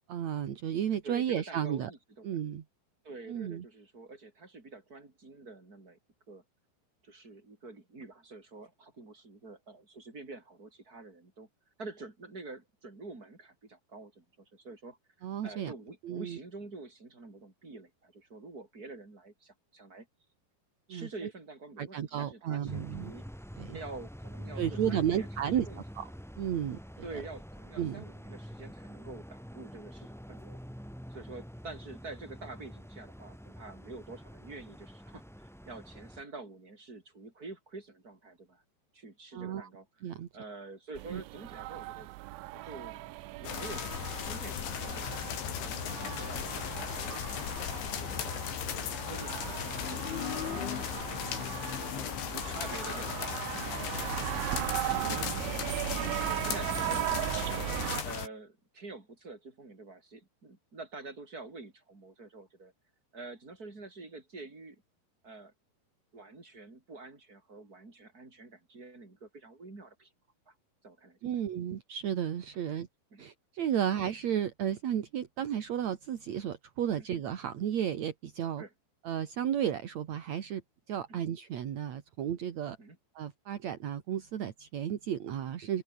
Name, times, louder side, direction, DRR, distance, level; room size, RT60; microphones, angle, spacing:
voice 1, 0.0-1.9 2.2-2.6 3.3-3.6 15.2-15.7 16.0-16.4 20.9-21.1 21.8-23.1 23.6-23.8 24.6-25.7 26.0-26.1 26.4-26.8 27.8-28.0 39.3-39.7 40.0-40.3 41.1-41.2 71.2-72.9 73.2-78.6 79.0-80.6 80.9-82.8 83.2-85.8, right 9 dB, 55° right, 2.2 m, -33 dB
voice 2, 1.0-2.4 3.0-6.0 6.3-6.4 7.0-11.5 11.8-15.0 15.4-20.1 20.9-23.3 23.7-25.8 27.0-30.6 31.1-38.6 38.9-42.1 42.5-45.3 45.6-48.4 48.7-51.4 51.9-54.4 55.1-56.0 56.2-57.7 58.0-62.7 63.1-64.8 65.2-65.5 66.1-70.1 70.5-70.6 70.8-71.7 72.7-72.8 73.1-73.2 77.0-77.1 78.6-78.7 81.1-81.2 82.8-83.0, right 3 dB, 20° right, 5.4 m, -47 dB
sound 1, 22.7-36.2, equal, ahead, 3.7 m, -46 dB
Yangoon street at night, 41.0-58.0, right 18 dB, 85° right, 3.3 m, -38 dB
sound 2, 43.4-58.3, left 9 dB, 80° left, 5.5 m, -36 dB
open air
omnidirectional pair, 5.2 m